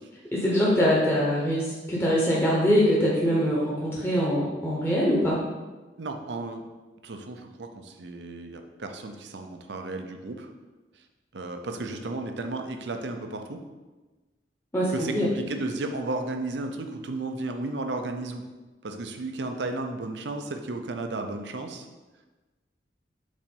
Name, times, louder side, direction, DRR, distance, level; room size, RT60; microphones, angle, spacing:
voice 1, 0.3-5.4 14.7-15.3, equal, 15° left, -6 dB, 0.9 m, -23 dB
voice 2, 6.0-6.6 7.0-10.5 11.3-13.6 14.9-18.4 18.8-21.9, right 2 dB, 80° right, 6 dB, 0.7 m, -33 dB
5.1 x 4.3 x 5.4 m, 1.2 s
head